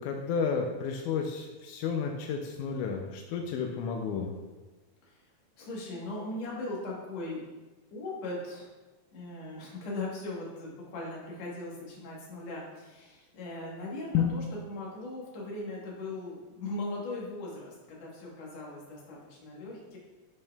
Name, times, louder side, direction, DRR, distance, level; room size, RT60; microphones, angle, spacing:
voice 1, 0.0-4.3 14.1-14.4, left 6 dB, 85° left, 2 dB, 2.1 m, -31 dB
voice 2, 5.6-7.4 7.9-8.7 9.1-20.0, left 2 dB, 65° left, -4 dB, 2.4 m, -39 dB
10.5 x 4.5 x 2.3 m, 1.2 s
omnidirectional pair, 3.5 m